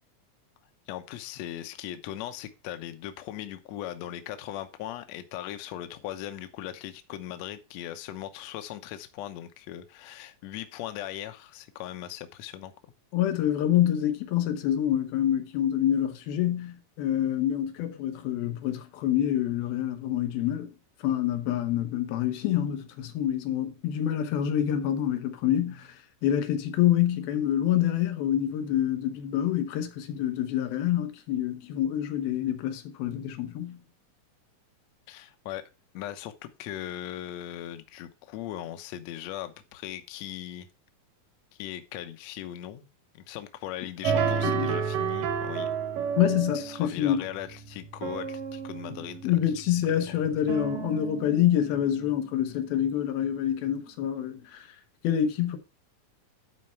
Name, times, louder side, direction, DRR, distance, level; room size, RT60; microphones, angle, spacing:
voice 1, 0.9-12.7 35.1-35.6 35.9-40.7 41.5-42.9 43.1-45.7 46.5-49.3 50.1-50.3, left 12 dB, 70° left, 1.7 m, -39 dB
voice 2, 13.1-20.7 21.0-26.0 26.2-33.8 44.4-44.8 46.2-47.2 49.2-54.7 55.0-55.6, left 11 dB, 90° left, 3.0 m, -27 dB
sound 1, 44.0-52.2, right 7 dB, 70° right, 2.8 m, -32 dB
11.0 x 4.4 x 5.7 m
omnidirectional pair, 4.2 m